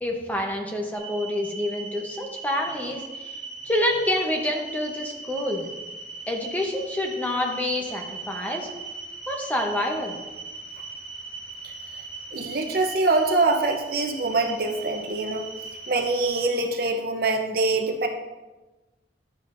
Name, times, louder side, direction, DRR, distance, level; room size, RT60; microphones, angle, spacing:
voice 1, 0.0-3.4 3.6-5.7 6.3-8.7 9.3-10.2, left 1 dB, 10° left, 1 dB, 0.8 m, -27 dB
sound 1, 0.9-16.5, right 3 dB, 55° left, 2.9 m, -39 dB
voice 2, 12.3-15.5 15.9-18.1, right 3 dB, 55° right, 3 dB, 0.7 m, -24 dB
10.5 x 7.1 x 2.6 m, 1.2 s
head